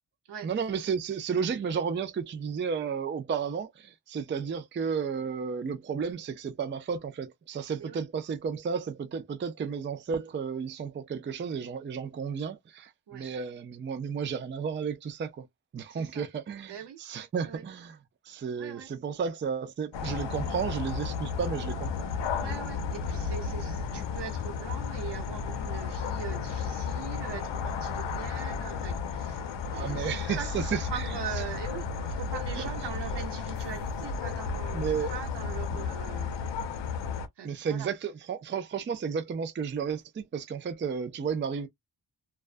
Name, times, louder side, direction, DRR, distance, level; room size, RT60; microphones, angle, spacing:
voice 1, 0.4-15.5 15.7-18.0 18.2-22.1 22.4-22.6 29.7-31.1 34.7-35.1 37.4-41.7, right 6 dB, 30° right, 0.4 m, -33 dB
voice 2, 15.9-16.3 16.7-17.0 17.4-17.6 18.6-18.9 22.3-36.4 37.4-37.9, right 8 dB, 70° right, 0.8 m, -41 dB
sound 1, 19.9-37.3, left 6 dB, 90° left, 0.6 m, -33 dB
sound 2, 28.1-29.4 30.1-36.0, left 2 dB, 45° left, 0.7 m, -44 dB
2.3 x 2.2 x 2.4 m
wide cardioid pair, 135°, 42 cm